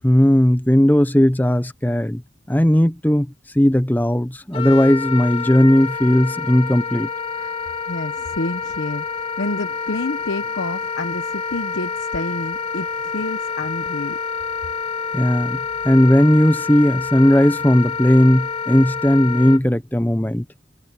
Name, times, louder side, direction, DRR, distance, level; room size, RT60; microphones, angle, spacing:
voice 1, 0.0-2.2 2.5-7.1 15.1-15.6 15.8-20.4, equal, 10° left, 0.8 m, -16 dB
Wind instrument woodwind instrument, 4.5-19.6, left 5 dB, 30° left, 2.4 m, -28 dB
voice 2, 7.9-14.2, left 2 dB, 70° left, 1.0 m, -29 dB
head